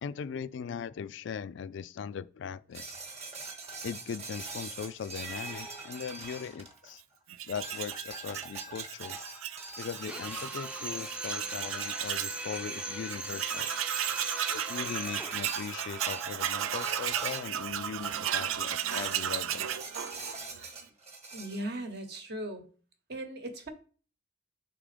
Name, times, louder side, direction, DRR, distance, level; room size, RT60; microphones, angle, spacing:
voice 1, 0.0-3.0 3.8-7.0 7.5-9.2 9.8-13.7 14.5-19.7, left 7 dB, 60° left, 0.3 m, -39 dB
sound 1, 2.7-7.1 7.6-17.6 18.0-18.5 18.9-21.6, right 3 dB, 30° right, 1.0 m, -43 dB
Tools, 7.3-12.4 12.8-12.9 13.1-20.7, right 10 dB, 80° right, 0.4 m, -35 dB
Drill, 10.1-15.4, right 1 dB, 5° right, 0.4 m, -40 dB
voice 2, 21.3-22.6 23.1-23.7, right 1 dB, 55° right, 1.0 m, -38 dB
5.9 x 3.7 x 5.0 m
head